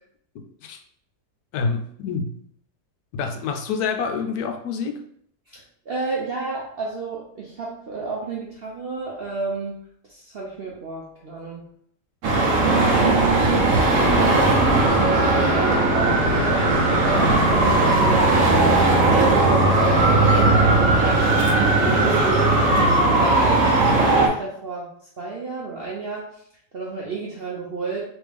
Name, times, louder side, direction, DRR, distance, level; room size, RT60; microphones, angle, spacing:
voice 1, 1.5-2.4 3.1-5.0, left 5 dB, 70° left, 5 dB, 1.0 m, -27 dB
voice 2, 5.5-9.8 10.1-11.7 12.6-15.2 15.5-24.9 25.2-26.3 26.7-28.0, right 3 dB, 80° right, -3 dB, 0.5 m, -32 dB
Traffic noise roadway noise, 12.2-24.3, right 2 dB, 60° right, 1.0 m, -18 dB
3.5 x 3.1 x 3.3 m, 0.66 s
omnidirectional pair, 1.8 m